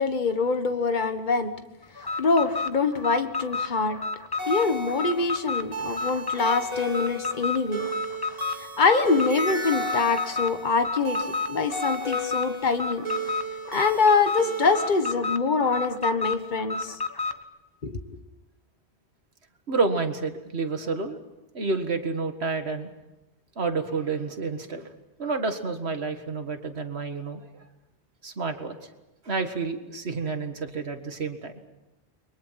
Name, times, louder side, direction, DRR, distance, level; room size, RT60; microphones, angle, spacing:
voice 1, 0.0-1.5 2.2-4.0 4.5-7.9 8.6-13.0 13.7-17.0 17.8-18.0, left 4 dB, 45° left, 7 dB, 1.6 m, -24 dB
Alarm, 2.0-17.4, left 4 dB, 20° left, 1.1 m, -31 dB
sound 1, 4.4-15.1, right 1 dB, 35° right, 3.6 m, -34 dB
voice 2, 19.7-21.2 21.5-22.9 23.6-24.9 25.2-27.6 28.2-28.8 29.2-31.5, right 4 dB, 75° right, 7 dB, 2.0 m, -29 dB
30.0 x 23.0 x 5.8 m, 0.98 s
omnidirectional pair, 1.1 m